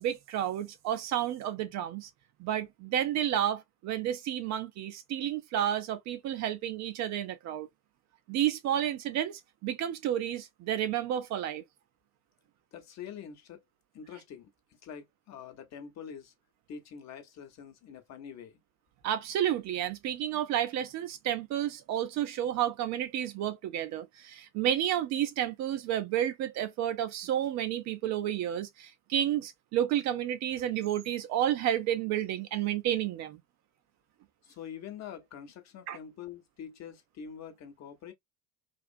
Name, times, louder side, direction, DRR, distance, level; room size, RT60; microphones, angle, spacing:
voice 1, 0.0-2.1 2.4-7.7 8.3-11.6 19.0-33.4 35.9-36.0, right 11 dB, 45° right, 0.5 m, -31 dB
voice 2, 12.7-13.6 13.9-16.3 16.7-18.6 34.4-38.1, left 8 dB, 40° left, 0.9 m, -45 dB
2.4 x 2.4 x 2.4 m
hypercardioid pair, 75°, 40 cm